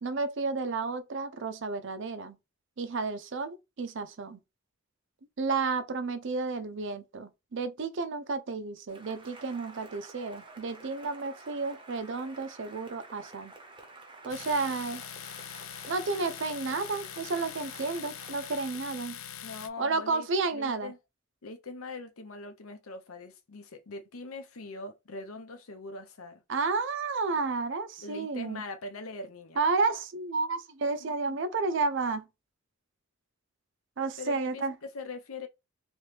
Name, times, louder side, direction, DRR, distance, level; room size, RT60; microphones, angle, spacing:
voice 1, 0.0-2.4 2.8-4.4 5.4-13.5 14.2-15.0 15.9-19.2 19.8-20.9 26.5-28.6 29.6-32.3 34.0-34.7, right 4 dB, 60° right, 0.5 m, -31 dB
Cheering / Applause, 8.9-18.9, right 3 dB, 25° right, 0.7 m, -50 dB
Domestic sounds home sounds, 14.3-19.7, left 9 dB, 70° left, 0.4 m, -43 dB
voice 2, 19.4-20.3 20.5-21.0 21.4-26.4 28.0-29.6 31.0-31.4 34.2-35.5, left 3 dB, 90° left, 0.8 m, -42 dB
3.1 x 3.0 x 3.3 m
head